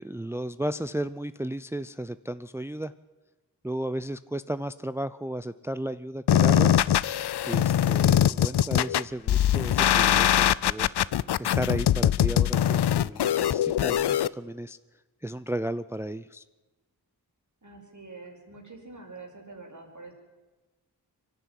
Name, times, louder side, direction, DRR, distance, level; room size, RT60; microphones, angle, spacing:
voice 1, 0.0-2.9 3.6-6.7 7.4-11.0 11.4-14.8 15.2-16.4, right 1 dB, 5° right, 14 dB, 0.5 m, -34 dB
sound 1, 6.3-14.3, left 11 dB, 80° left, 0.6 m, -22 dB
voice 2, 17.6-20.1, right 3 dB, 50° right, 1 dB, 5.8 m, -45 dB
24.0 x 11.5 x 9.9 m, 1.2 s
cardioid pair, 45°, 39 cm